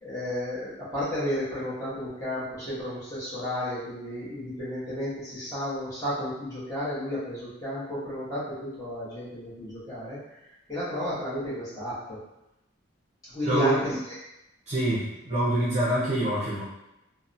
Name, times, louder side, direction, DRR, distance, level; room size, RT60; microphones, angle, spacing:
voice 1, 0.0-10.2 10.7-12.2 13.3-14.0, left 1 dB, 15° left, -11 dB, 1.0 m, -32 dB
voice 2, 13.4-14.0 14.7-16.6, right 1 dB, 35° right, -8 dB, 0.6 m, -26 dB
2.8 x 2.1 x 2.5 m, 0.90 s
head